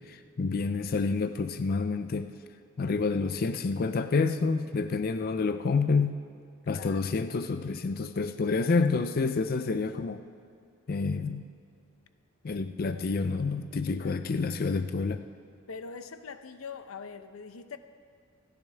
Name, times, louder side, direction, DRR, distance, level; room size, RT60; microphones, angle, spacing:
voice 1, 0.0-2.3 2.8-6.2 6.7-10.2 10.9-11.4 12.4-15.2, left 4 dB, 45° left, 9 dB, 0.4 m, -28 dB
voice 2, 6.6-7.1 13.9-14.4 15.7-17.8, left 5 dB, 90° left, 10 dB, 0.7 m, -43 dB
27.5 x 10.5 x 3.4 m, 2.3 s
head